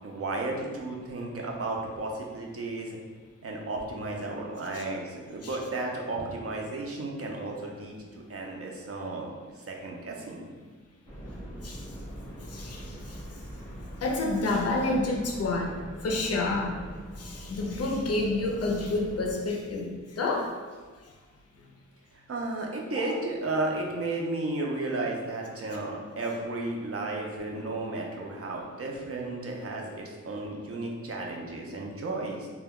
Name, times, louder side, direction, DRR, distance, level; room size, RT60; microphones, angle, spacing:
voice 1, 0.0-3.0 3.4-9.3 9.6-10.4 22.1-32.5, right 2 dB, 50° right, 0 dB, 0.5 m, -33 dB
sound 1, 11.1-19.4, equal, 5° left, 0.7 m, -42 dB
voice 2, 12.5-13.2 14.0-15.7 16.0-16.7 17.2-20.5 23.0-23.1, left 2 dB, 55° left, 0 dB, 0.5 m, -29 dB
2.2 x 2.1 x 3.5 m, 1.4 s
wide cardioid pair, 115°, 30 cm